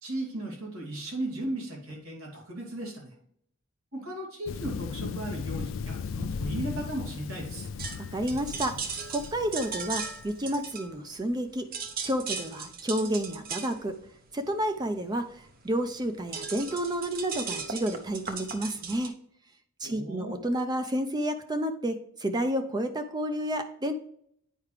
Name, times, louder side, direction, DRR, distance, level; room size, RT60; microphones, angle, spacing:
voice 1, 0.0-3.1 3.9-7.7 19.8-20.4, right 1 dB, 85° right, -1 dB, 2.6 m, -36 dB
Thunder, 4.5-10.3, left 5 dB, 65° left, 0.3 m, -37 dB
sound 1, 7.8-11.4 11.6-19.1, right 5 dB, 45° right, 0.8 m, -37 dB
voice 2, 8.1-8.8 9.1-11.7 12.0-14.0 14.3-19.2 19.8-23.9, right 1 dB, 20° right, 8 dB, 0.5 m, -30 dB
9.0 x 4.7 x 3.3 m, 0.68 s
head